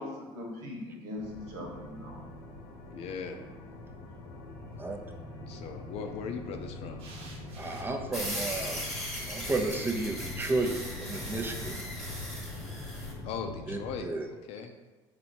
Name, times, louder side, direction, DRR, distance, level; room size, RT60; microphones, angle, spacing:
voice 1, 0.0-2.2 12.8-13.2, left 1 dB, 80° right, -2 dB, 1.3 m, -41 dB
sound 1, 1.2-14.0, left 2 dB, 90° left, 0.8 m, -44 dB
voice 2, 2.9-3.5 5.4-7.0 13.2-14.7, left 5 dB, 60° left, 5 dB, 0.5 m, -39 dB
sound 2, 4.7-5.3 7.0-9.0 10.5-11.5, right 3 dB, 60° right, 0.9 m, -52 dB
voice 3, 7.6-8.8 9.3-11.8 13.7-14.3, right 3 dB, 20° right, 4 dB, 0.5 m, -32 dB
sound 3, 8.1-13.1, equal, ahead, 1.3 m, -38 dB
4.3 x 2.7 x 4.3 m, 1.2 s
cardioid pair, 115°, 12 cm